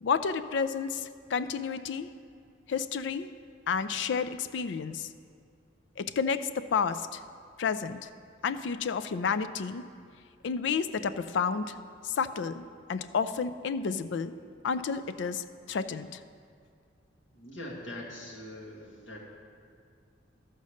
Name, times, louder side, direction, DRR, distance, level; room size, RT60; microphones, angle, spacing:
voice 1, 0.0-2.1 2.7-3.3 3.7-5.1 6.0-7.2 7.6-8.1 8.4-9.9 10.4-11.8 12.0-14.3 14.6-16.2, left 6 dB, 70° left, 12 dB, 0.4 m, -31 dB
voice 2, 17.3-19.2, left 1 dB, 90° left, -2 dB, 1.9 m, -42 dB
12.5 x 5.3 x 6.4 m, 2.3 s
head